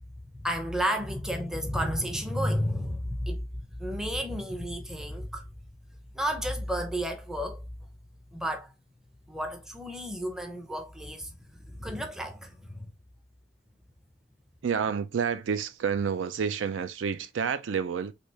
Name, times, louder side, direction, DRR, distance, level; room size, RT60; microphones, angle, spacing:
voice 1, 0.3-3.4 3.8-5.5 6.1-7.7 8.3-8.7 9.3-11.3 11.7-12.9, equal, 5° right, 0.5 m, -32 dB
voice 2, 14.6-18.1, right 6 dB, 85° right, 0.4 m, -29 dB
3.3 x 2.8 x 2.7 m
head